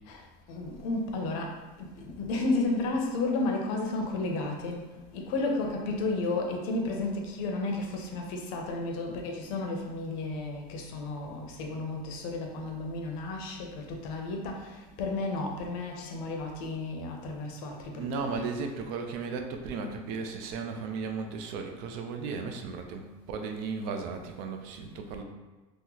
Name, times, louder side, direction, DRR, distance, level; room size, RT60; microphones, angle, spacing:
voice 1, 0.5-4.8 5.1-18.5, left 2 dB, 65° left, 1 dB, 0.7 m, -32 dB
voice 2, 17.9-25.2, right 4 dB, 55° right, 4 dB, 0.5 m, -35 dB
2.9 x 2.1 x 3.8 m, 1.2 s
supercardioid pair, 150°, 19 cm